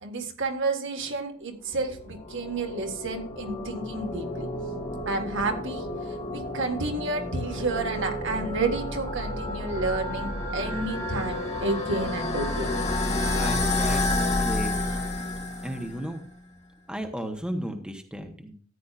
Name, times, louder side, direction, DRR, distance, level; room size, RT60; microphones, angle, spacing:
voice 1, 0.0-4.5 5.0-12.7, right 3 dB, 60° right, 4 dB, 1.7 m, -30 dB
sound 1, 1.8-16.0, left 2 dB, 30° left, 2.3 m, -30 dB
voice 2, 13.4-14.7 15.6-16.2 16.9-18.6, equal, 5° right, 4 dB, 1.0 m, -34 dB
14.0 x 9.5 x 2.5 m, 0.43 s
head